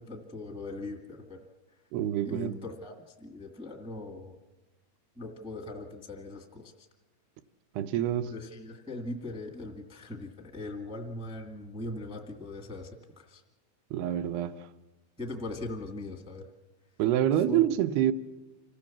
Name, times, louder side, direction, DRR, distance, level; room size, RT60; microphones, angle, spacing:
voice 1, 0.0-1.4 2.2-4.3 5.2-6.7 8.2-12.9 13.2-13.4 15.2-16.4 17.5-17.6, left 2 dB, 10° right, 0.3 m, -40 dB
voice 2, 1.9-2.6 7.7-8.3 13.9-14.7 17.0-18.1, right 11 dB, 85° right, 2.8 m, -27 dB
26.5 x 15.5 x 7.2 m
omnidirectional pair, 4.4 m